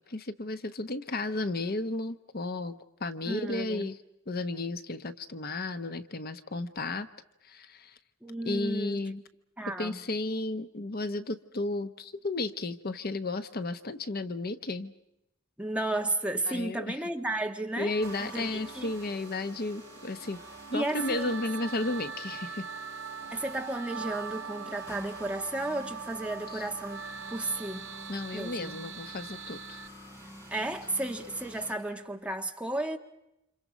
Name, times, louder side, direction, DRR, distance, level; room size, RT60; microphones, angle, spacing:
voice 1, 0.1-4.0 4.3-7.1 7.4-7.9 8.4-9.2 9.8-14.9 16.5-17.0 17.8-20.4 20.7-22.7 26.5-26.7 28.1-29.8, left 2 dB, 45° left, 0.9 m, -33 dB
voice 2, 3.3-3.9 8.2-9.0 9.6-10.0 15.6-17.9 18.2-18.9 20.7-21.4 23.3-27.9 28.3-28.7 30.5-33.0, right 2 dB, 5° right, 1.5 m, -33 dB
sound 1, 17.9-29.9, right 6 dB, 60° right, 1.3 m, -42 dB
sound 2, 18.0-31.7, equal, 15° left, 7.1 m, -48 dB
30.0 x 27.5 x 5.1 m
head